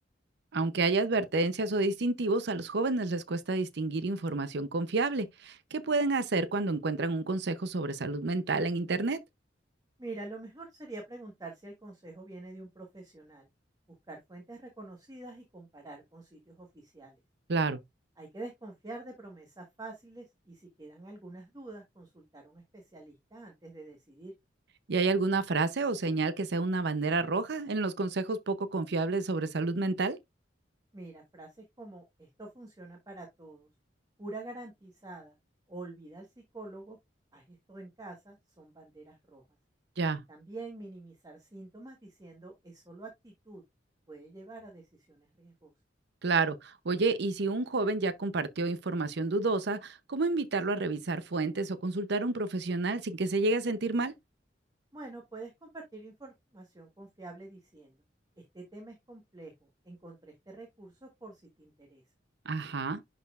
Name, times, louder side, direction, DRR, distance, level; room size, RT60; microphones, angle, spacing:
voice 1, 0.5-9.2 17.5-17.8 24.9-30.2 40.0-40.2 46.2-54.1 62.5-63.0, right 3 dB, 65° right, 0.7 m, -29 dB
voice 2, 10.0-13.5 14.1-17.2 18.2-24.3 30.9-33.7 34.2-35.4 35.7-36.3 36.5-37.0 37.3-39.4 40.3-43.6 44.1-45.7 54.9-58.0 58.4-62.0, right 2 dB, 20° right, 1.4 m, -46 dB
11.0 x 4.2 x 2.4 m
head